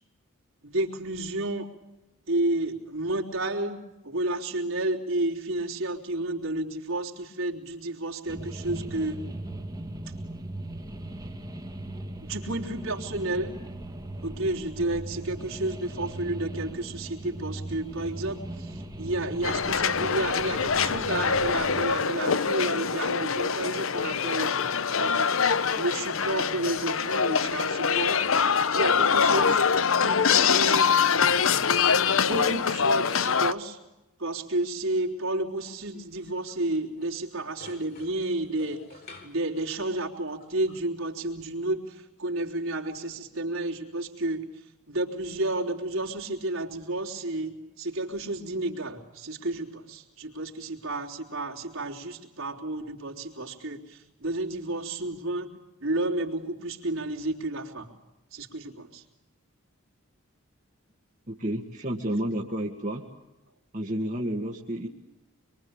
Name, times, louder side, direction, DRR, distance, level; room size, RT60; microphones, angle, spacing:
voice 1, 0.6-1.7 2.3-3.8 4.0-9.2 12.2-13.5 14.2-24.6 25.0-25.4 25.8-29.6 29.9-30.9 32.3-33.8 34.2-44.5 44.9-55.5 55.8-57.9 58.3-59.0, right 2 dB, 65° right, 0 dB, 3.9 m, -31 dB
sound 1, 8.3-22.0, right 1 dB, 15° right, 2.0 m, -38 dB
sound 2, 19.4-33.5, left 6 dB, 65° left, 0.9 m, -24 dB
sound 3, 35.7-36.7 37.0-37.2 37.5-39.6 40.0-40.8, left 2 dB, 45° left, 3.5 m, -51 dB
voice 2, 61.3-63.1 63.7-64.9, right 1 dB, 35° right, 0 dB, 2.0 m, -30 dB
26.5 x 23.5 x 8.9 m, 0.98 s
head